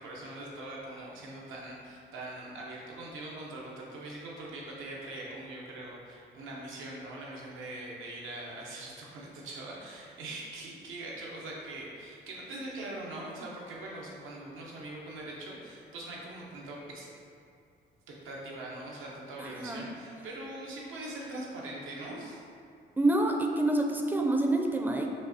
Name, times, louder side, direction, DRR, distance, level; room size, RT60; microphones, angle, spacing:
voice 1, 0.0-17.1 18.1-22.4, right 2 dB, 85° right, -3 dB, 0.8 m, -42 dB
voice 2, 19.4-19.9 23.0-25.1, right 2 dB, 10° right, 2 dB, 0.4 m, -27 dB
5.2 x 2.7 x 2.7 m, 2.3 s
cardioid pair, 90°, 20 cm